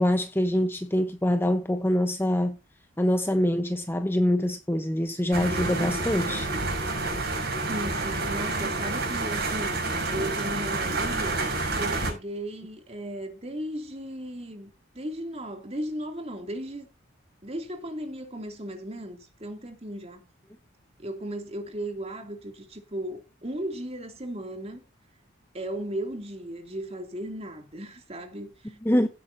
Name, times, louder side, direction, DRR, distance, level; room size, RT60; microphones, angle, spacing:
voice 1, 0.0-2.6 3.0-6.5 28.8-29.1, left 1 dB, 10° left, 0.9 m, -24 dB
sound 1, 5.3-12.1, right 2 dB, 55° right, 6.0 m, -29 dB
voice 2, 7.7-14.7 14.9-16.9 17.4-20.2 21.0-24.8 25.5-28.8, right 1 dB, 30° right, 2.8 m, -36 dB
16.5 x 9.0 x 2.7 m
head